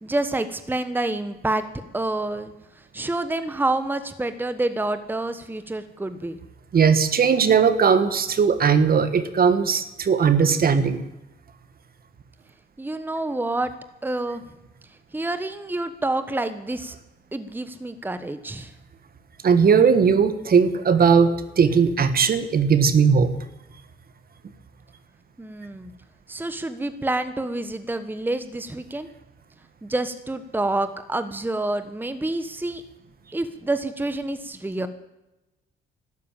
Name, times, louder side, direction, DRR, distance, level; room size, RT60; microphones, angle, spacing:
voice 1, 0.0-6.4 12.8-13.7 14.0-14.4 15.1-17.0 17.3-18.7 25.4-25.9 26.3-29.1 29.8-32.8 33.3-34.9, right 2 dB, 10° right, 10 dB, 1.1 m, -28 dB
voice 2, 6.7-11.0 19.4-21.3 21.6-23.3, right 6 dB, 50° right, 11 dB, 1.5 m, -18 dB
12.5 x 12.0 x 9.3 m, 0.97 s
cardioid pair, 90°, 20 cm